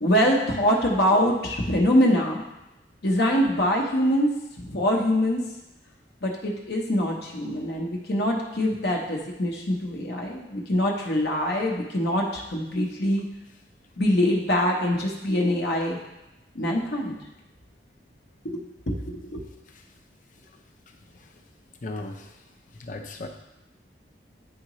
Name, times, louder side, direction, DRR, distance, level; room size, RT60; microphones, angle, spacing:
voice 1, 0.0-2.4 3.0-4.3 4.6-5.4 6.2-13.2 14.0-16.0 16.5-17.2 18.4-19.4, equal, 65° left, -1 dB, 1.0 m, -24 dB
voice 2, 20.9-21.3 21.8-22.4 22.7-23.3, left 2 dB, 45° left, 3 dB, 0.7 m, -38 dB
9.7 x 3.8 x 3.1 m, 0.95 s
head